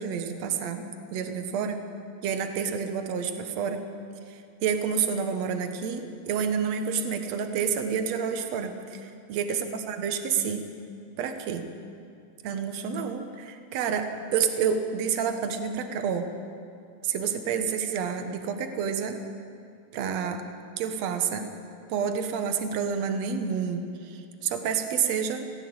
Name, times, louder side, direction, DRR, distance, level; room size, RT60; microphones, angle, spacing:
voice 1, 0.0-1.8 2.2-3.8 4.3-9.6 9.9-10.7 11.2-11.6 12.4-16.3 17.0-19.2 19.9-20.4 20.8-21.5 21.9-25.4, right 7 dB, 60° right, 7 dB, 2.1 m, -29 dB
19.0 x 15.5 x 8.8 m, 2.5 s
omnidirectional pair, 4.2 m